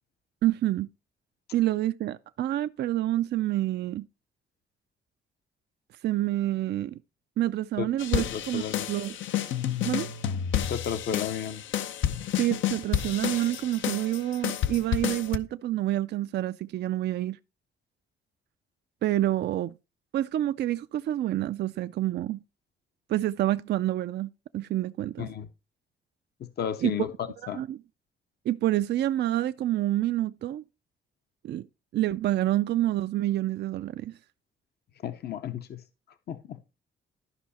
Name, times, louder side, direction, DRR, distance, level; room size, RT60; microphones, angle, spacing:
voice 1, 0.4-0.9 1.5-4.1 6.0-7.0 7.4-8.6 8.9-9.2 9.8-10.1 12.4-17.4 19.0-19.7 20.1-22.4 23.1-25.3 26.8-26.9 27.5-27.8 28.5-30.6 31.4-31.7 31.9-34.2, right 14 dB, 60° right, 0.4 m, -28 dB
sound 1, 8.0-15.4, left 10 dB, 80° left, 0.8 m, -30 dB
voice 2, 8.2-8.9 10.7-11.6 25.2-25.5 26.4-27.6 35.0-35.8 36.3-36.6, left 8 dB, 55° left, 0.8 m, -33 dB
12.5 x 5.5 x 4.2 m
cardioid pair, 115°, 20 cm